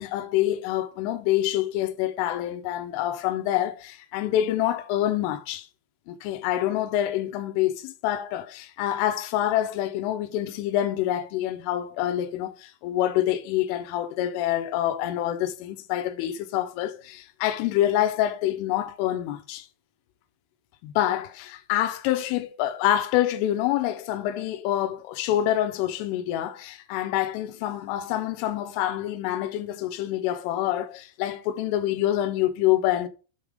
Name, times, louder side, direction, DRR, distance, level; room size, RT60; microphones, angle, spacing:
voice 1, 0.0-5.7 6.1-19.7 20.8-33.1, left 12 dB, 85° left, 3.3 m, -26 dB
8.0 x 3.5 x 5.1 m
omnidirectional pair, 5.6 m